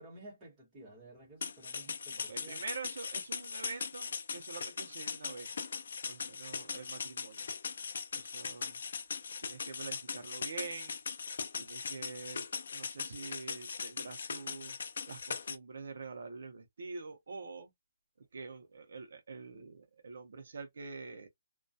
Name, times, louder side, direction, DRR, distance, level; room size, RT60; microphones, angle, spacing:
voice 1, 0.0-2.6, right 1 dB, 15° right, 1.1 m, -53 dB
sound 1, 1.4-15.6, left 5 dB, 60° left, 0.3 m, -40 dB
voice 2, 2.3-5.5 6.1-7.5 8.1-8.8 9.4-10.9 11.6-12.5 12.7-14.8 15.1-17.7 18.3-21.3, right 4 dB, 65° right, 0.6 m, -46 dB
2.2 x 2.2 x 2.6 m
hypercardioid pair, 180°, 0 cm